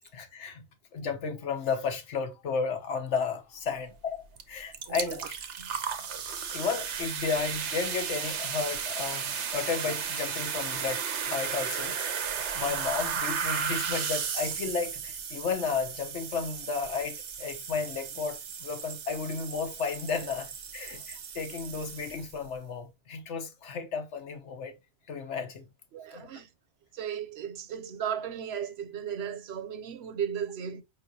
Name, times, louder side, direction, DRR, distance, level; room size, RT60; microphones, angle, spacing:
voice 1, 0.1-0.7 0.9-5.3 6.5-12.0 12.5-24.7 25.1-25.6 26.1-26.4, left 5 dB, 90° left, 1.3 m, -33 dB
sound 1, 4.4-4.5 4.7-22.5, right 7 dB, 90° right, 1.1 m, -35 dB
voice 2, 4.9-5.2 5.6-5.7 6.0-6.1 25.9-26.5 26.9-30.8, right 8 dB, 70° right, 0.9 m, -35 dB
5.2 x 3.7 x 2.7 m
omnidirectional pair, 1.2 m